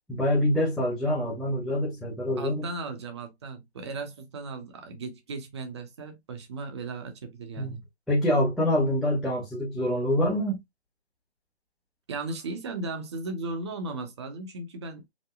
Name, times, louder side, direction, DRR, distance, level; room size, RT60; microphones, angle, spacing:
voice 1, 0.1-2.7 7.6-7.8 8.1-10.6, left 1 dB, ahead, 0.3 m, -25 dB
voice 2, 2.4-7.8 12.1-15.0, right 3 dB, 25° right, 0.9 m, -36 dB
5.0 x 2.1 x 3.5 m
figure-of-eight pair, 155°, 32 cm